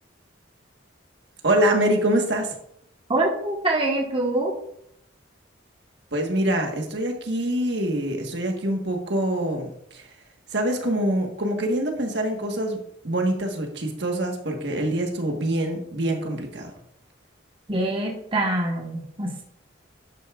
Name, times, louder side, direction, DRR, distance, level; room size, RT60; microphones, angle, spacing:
voice 1, 1.4-2.5 6.1-10.1 10.5-12.8 13.0-16.7, right 1 dB, 65° right, 2 dB, 1.5 m, -25 dB
voice 2, 3.1-4.5 17.7-19.4, right 2 dB, 30° right, 0 dB, 1.4 m, -25 dB
11.5 x 9.2 x 2.5 m, 0.73 s
head